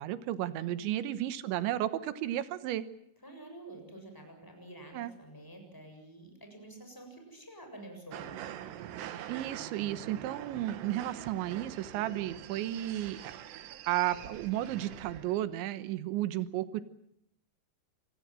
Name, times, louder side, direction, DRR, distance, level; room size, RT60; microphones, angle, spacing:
voice 1, 0.0-2.9 4.9-5.1 9.3-13.2 13.9-16.8, right 13 dB, 90° right, 13 dB, 3.5 m, -33 dB
voice 2, 3.2-8.4, right 1 dB, 5° left, 4 dB, 7.0 m, -49 dB
sound 1, 8.1-15.4, right 10 dB, 75° right, 3.4 m, -44 dB
28.0 x 20.0 x 7.7 m, 0.75 s
omnidirectional pair, 5.1 m